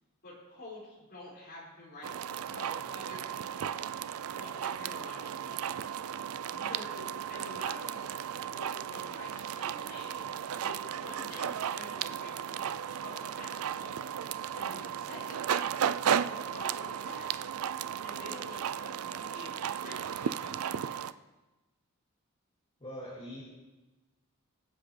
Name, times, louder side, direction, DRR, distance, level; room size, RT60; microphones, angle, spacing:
voice 1, 0.2-3.8 4.2-5.8 6.5-8.2 8.5-10.3 10.6-13.9 14.5-15.7 16.0-17.3 18.0-21.0, left 1 dB, 45° left, -6 dB, 4.9 m, -48 dB
sound 1, 2.0-21.1, right 8 dB, 70° right, 0.4 m, -35 dB
voice 2, 22.8-23.4, equal, 25° left, -7 dB, 2.2 m, -42 dB
23.5 x 7.8 x 3.3 m, 1.1 s
head